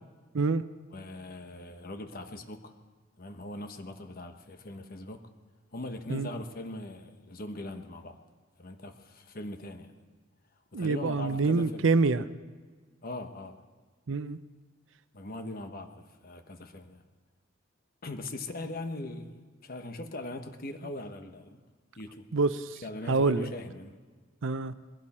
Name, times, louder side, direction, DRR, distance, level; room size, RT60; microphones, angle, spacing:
voice 1, 0.9-2.8 3.2-5.3 5.7-8.2 8.6-10.0 10.7-11.9 13.0-13.6 15.1-17.0 18.0-21.6 22.0-22.3 22.8-24.0, left 2 dB, 50° left, 7 dB, 1.1 m, -40 dB
voice 2, 10.7-12.2 14.1-14.4 22.3-22.8 23.1-23.5 24.4-24.7, right 4 dB, 80° right, 13 dB, 0.6 m, -26 dB
21.0 x 16.0 x 4.3 m, 1.4 s
head